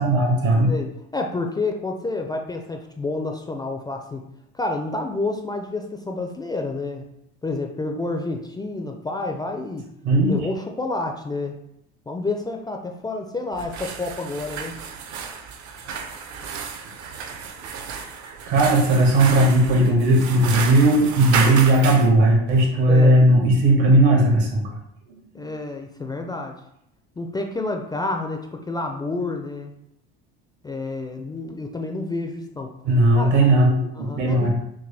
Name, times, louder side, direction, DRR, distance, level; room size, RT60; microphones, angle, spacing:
voice 1, 0.0-0.7 10.0-10.3 18.5-24.6 25.1-25.5 32.8-34.5, right 1 dB, 75° right, -1 dB, 1.7 m, -17 dB
voice 2, 0.7-4.2 4.5-7.0 7.4-9.8 10.2-11.6 12.1-14.8 22.9-23.1 25.3-26.5 27.2-29.7 30.6-32.7 33.2-33.3 34.0-34.5, left 2 dB, 15° left, 3 dB, 0.4 m, -29 dB
sound 1, 13.5-22.1, right 6 dB, 60° right, 0.7 m, -32 dB
6.0 x 2.2 x 3.3 m, 0.77 s
supercardioid pair, 100°, 32 cm